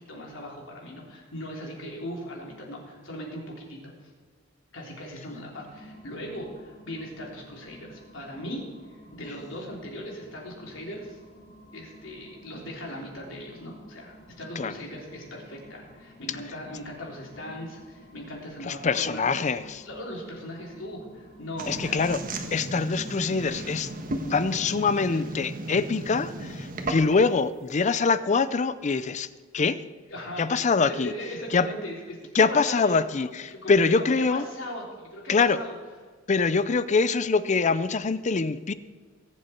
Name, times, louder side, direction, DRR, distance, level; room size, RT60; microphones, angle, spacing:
voice 1, 0.1-4.1 4.7-11.2 11.7-19.3 19.9-22.1 25.1-25.2 30.1-30.6 30.9-33.0 33.5-35.8, left 1 dB, 75° left, 3.7 m, -39 dB
sound 1, 5.3-25.1, equal, 55° left, 3.6 m, -51 dB
voice 2, 18.6-19.9 21.7-22.2 22.5-23.9 24.3-29.8 30.4-31.1 31.5-31.7 32.3-34.4 35.3-35.6 36.3-38.7, left 4 dB, 35° left, 0.5 m, -24 dB
sound 2, 21.6-27.3, right 2 dB, 45° right, 1.4 m, -35 dB
22.5 x 7.7 x 4.5 m
head